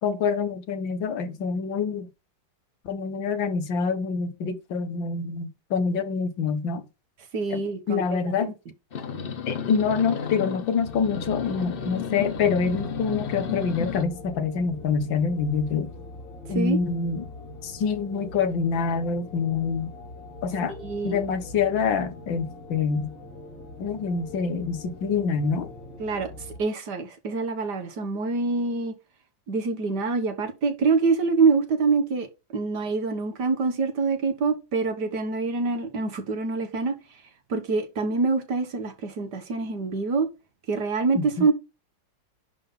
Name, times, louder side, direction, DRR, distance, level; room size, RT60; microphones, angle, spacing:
voice 1, 0.0-2.1 2.9-6.8 7.5-7.6 7.9-8.5 9.5-15.9 16.5-17.2 17.6-19.9 20.4-20.8 21.0-23.1 23.8-25.7 41.2-41.5, left 5 dB, 90° left, 1.9 m, -26 dB
voice 2, 7.3-8.5 16.5-16.8 20.7-21.2 26.0-26.3 26.6-28.9 29.5-32.3 32.5-36.9 37.5-40.3 40.7-41.5, right 4 dB, 60° right, 2.0 m, -25 dB
sound 1, 8.9-14.0, left 6 dB, 45° left, 0.8 m, -33 dB
sound 2, 10.8-26.6, left 2 dB, 75° left, 2.6 m, -43 dB
10.5 x 3.8 x 5.5 m
omnidirectional pair, 2.0 m